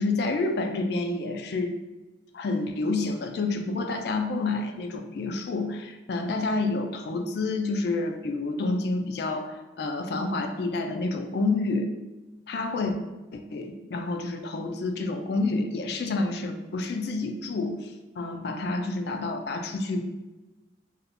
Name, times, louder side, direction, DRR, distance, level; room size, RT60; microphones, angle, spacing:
voice 1, 0.0-1.7 2.3-11.9 12.5-13.0 13.3-20.1, left 3 dB, 60° left, 5 dB, 0.3 m, -29 dB
2.6 x 2.2 x 4.1 m, 1.1 s
head